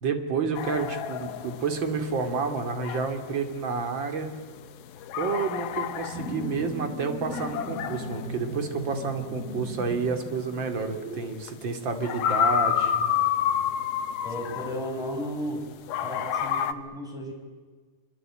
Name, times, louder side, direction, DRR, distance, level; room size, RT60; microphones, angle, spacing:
voice 1, 0.0-4.3 5.2-13.0, right 5 dB, 35° right, 7 dB, 2.8 m, -30 dB
sound 1, 0.5-15.5 15.9-16.7, left 9 dB, 80° left, 3.0 m, -30 dB
sound 2, 6.1-11.2, equal, 75° right, 8.6 m, -37 dB
voice 2, 14.2-15.6 16.0-17.3, equal, ahead, 0 dB, 5.7 m, -34 dB
25.5 x 25.0 x 8.9 m, 1.4 s
omnidirectional pair, 4.4 m